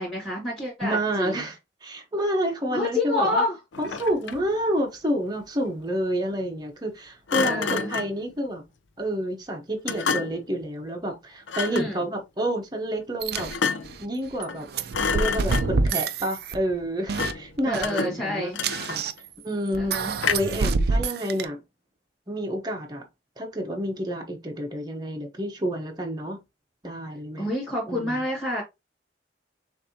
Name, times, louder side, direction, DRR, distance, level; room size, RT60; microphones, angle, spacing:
voice 1, 0.0-1.5 2.7-3.6 7.4-7.9 11.7-12.1 17.7-18.6 19.8-20.1 27.4-28.6, left 1 dB, ahead, 2.5 m, -28 dB
voice 2, 0.8-3.4 3.8-8.6 9.0-13.5 14.0-14.7 15.1-18.5 18.9-19.0 19.4-20.0 20.3-21.6 22.3-23.1 23.4-26.4 26.8-27.5 27.9-28.2, right 1 dB, 20° right, 1.0 m, -29 dB
Thump thud, 3.7-4.6 7.3-8.2 9.9-10.5 11.5-11.9 13.3-14.0 14.4-14.6 14.9-15.9 17.1-17.5 17.8-19.2 20.2-20.7, left 5 dB, 80° left, 0.5 m, -29 dB
sound 1, 13.2-13.6 13.8-14.0 14.3-16.8 17.1-17.3 17.6-17.8 18.6-19.3 19.7-21.5, right 4 dB, 55° right, 0.4 m, -27 dB
6.6 x 2.7 x 2.8 m
head